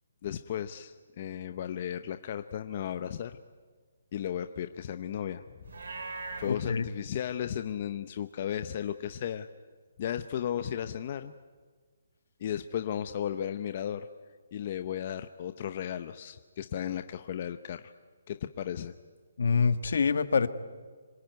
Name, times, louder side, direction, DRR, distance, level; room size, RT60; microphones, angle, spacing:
voice 1, 0.2-3.4 4.1-5.7 6.4-9.5 10.0-11.3 12.4-14.1 14.5-17.9 18.3-18.9, left 9 dB, 30° left, 10 dB, 0.7 m, -35 dB
Livestock farm animals working animals, 5.6-6.5, right 3 dB, 75° right, 4.9 m, -39 dB
voice 2, 6.4-6.8 19.4-20.5, left 5 dB, 60° left, 12 dB, 1.5 m, -25 dB
26.0 x 22.0 x 9.4 m, 1.5 s
hypercardioid pair, 175°, 0 cm